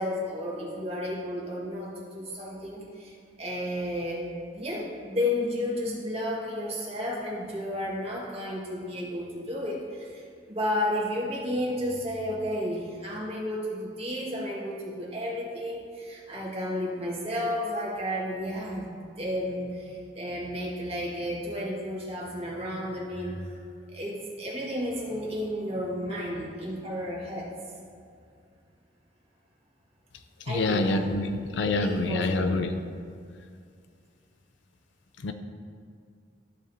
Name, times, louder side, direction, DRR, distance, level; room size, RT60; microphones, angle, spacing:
voice 1, 0.0-4.3 4.5-10.2 10.5-18.9 19.2-23.6 23.9-27.7 30.4-31.0 31.6-32.6, left 1 dB, 35° right, -5 dB, 1.7 m, -32 dB
voice 2, 30.4-32.7 35.2-35.3, left 2 dB, 70° left, 8 dB, 0.5 m, -27 dB
13.0 x 5.1 x 2.7 m, 2.2 s
head